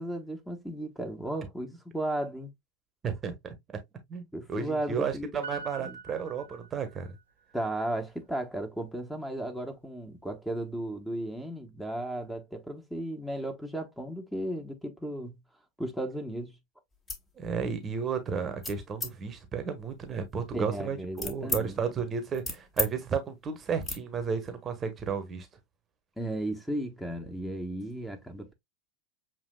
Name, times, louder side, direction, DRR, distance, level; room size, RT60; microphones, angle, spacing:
voice 1, 0.0-2.5 4.3-6.0 7.5-15.4 15.8-16.6 20.5-21.8 26.2-28.5, right 1 dB, 5° left, 1.1 m, -35 dB
voice 2, 3.0-3.5 4.1-7.1 17.4-25.5, right 6 dB, 25° right, 1.1 m, -33 dB
Piano, 5.4-7.2 7.5-7.6, right 4 dB, 85° right, 1.1 m, -43 dB
sound 1, 16.9-17.3 17.7-18.1 18.6-19.1 19.8-21.6 22.0-22.9 23.2-23.4 23.8-24.0, left 2 dB, 20° left, 1.4 m, -36 dB
7.2 x 2.8 x 2.2 m
figure-of-eight pair, 85°, 0 cm